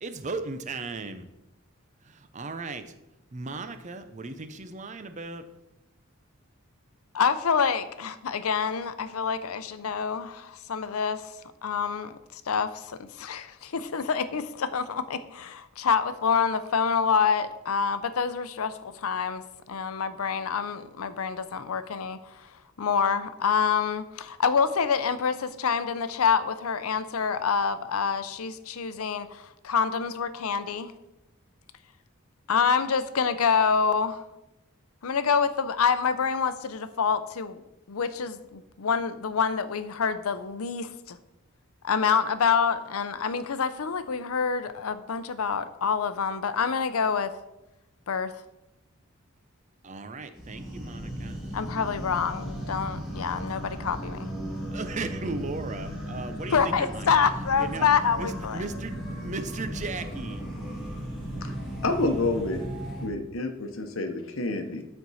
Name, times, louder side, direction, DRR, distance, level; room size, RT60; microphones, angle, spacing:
voice 1, 0.0-1.3 2.0-2.9 3.3-5.5 49.8-51.4 51.7-51.9 54.7-57.1 57.5-57.9 58.1-60.4, right 3 dB, 35° right, 10 dB, 0.6 m, -36 dB
voice 2, 7.1-11.2 11.6-19.4 19.7-22.5 22.8-30.9 32.5-34.2 35.0-37.6 37.9-41.2 41.8-47.3 48.1-48.3 51.5-54.3 56.5-58.6, left 6 dB, 90° left, 12 dB, 0.6 m, -27 dB
sound 1, 50.3-63.1, equal, ahead, 2.7 m, -36 dB
voice 3, 61.8-62.6 63.0-64.8, left 2 dB, 70° left, 6 dB, 0.9 m, -28 dB
13.0 x 4.5 x 4.1 m, 0.93 s
head